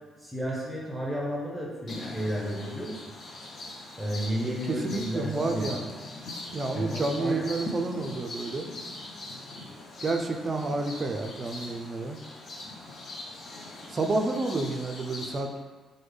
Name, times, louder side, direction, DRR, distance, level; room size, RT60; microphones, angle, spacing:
voice 1, 0.2-2.9 4.0-5.8 6.7-7.5, equal, 5° right, -4 dB, 0.6 m, -32 dB
sound 1, 1.9-15.4, left 2 dB, 55° left, 0.5 m, -41 dB
voice 2, 4.5-5.9 6.5-8.7 10.0-12.2 13.9-15.5, right 3 dB, 40° right, 4 dB, 0.3 m, -30 dB
3.3 x 2.1 x 3.3 m, 1.4 s
cardioid pair, 90°, 0 cm